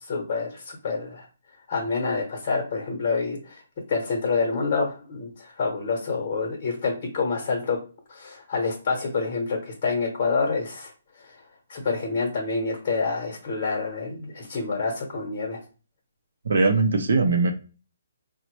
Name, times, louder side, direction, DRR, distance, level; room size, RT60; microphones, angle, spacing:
voice 1, 0.1-1.3 1.7-3.6 3.9-7.8 8.1-10.9 11.7-15.6, left 4 dB, 35° left, 0 dB, 0.8 m, -27 dB
voice 2, 16.5-17.5, right 3 dB, 70° right, 5 dB, 0.5 m, -20 dB
4.0 x 2.1 x 3.0 m, 0.36 s
hypercardioid pair, 165°, 0 cm